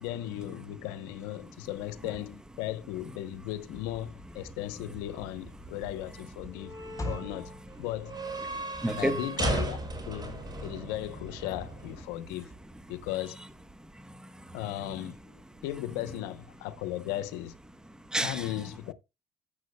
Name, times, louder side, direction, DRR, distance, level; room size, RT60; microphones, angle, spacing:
voice 1, 0.0-6.8 7.0-7.5 7.8-8.2 8.9-12.5 12.9-13.4 14.5-17.5 18.2-18.9, left 14 dB, 90° left, 0.9 m, -36 dB
sound 1, 3.7-12.0, right 2 dB, 25° right, 6.0 m, -38 dB
sound 2, 7.0-7.4 7.9-8.0 8.4-8.5 8.8-8.9 9.4-9.9 10.5-10.8 11.0-11.1 11.4-11.6 12.2-12.3 12.5-12.7 13.0-13.1 13.3-13.4, left 1 dB, 20° left, 3.8 m, -35 dB
voice 2, 8.5-9.2 13.8-14.6 18.1-18.5, right 1 dB, 5° right, 0.9 m, -32 dB
16.0 x 7.1 x 2.2 m
supercardioid pair, 90°, 17 cm